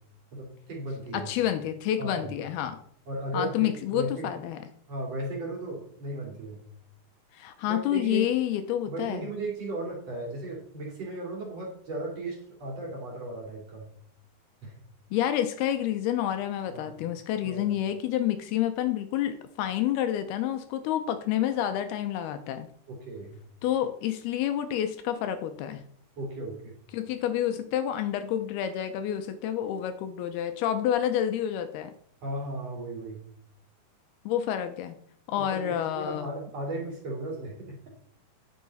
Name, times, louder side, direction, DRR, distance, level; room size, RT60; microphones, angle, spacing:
voice 1, 0.3-1.3 2.0-2.3 3.1-4.3 4.9-6.6 7.6-8.3 8.8-13.9 14.6-14.7 16.7-17.0 17.4-17.7 22.9-23.4 26.2-26.8 32.2-33.2 35.4-37.8, right 2 dB, 40° right, -1 dB, 3.6 m, -36 dB
voice 2, 1.1-2.8 3.3-4.6 7.3-9.3 15.1-22.7 23.6-25.8 26.9-31.9 34.3-35.0 35.3-36.4, left 11 dB, 80° left, 9 dB, 2.6 m, -29 dB
10.5 x 8.5 x 4.1 m, 0.64 s
omnidirectional pair, 4.7 m